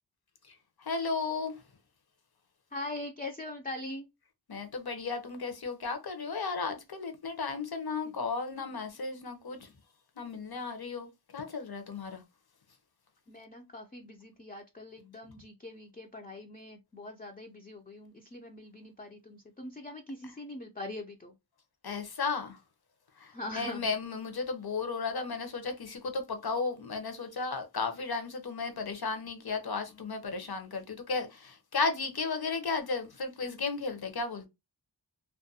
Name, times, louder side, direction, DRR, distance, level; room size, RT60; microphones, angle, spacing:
voice 1, 0.8-1.6 4.5-9.7 10.2-12.2 21.8-22.6 23.2-34.5, left 4 dB, 55° left, 0.7 m, -34 dB
voice 2, 2.7-4.1 13.3-21.3 23.3-23.8, left 2 dB, 20° left, 0.4 m, -42 dB
2.4 x 2.2 x 2.7 m
wide cardioid pair, 45°, 45 cm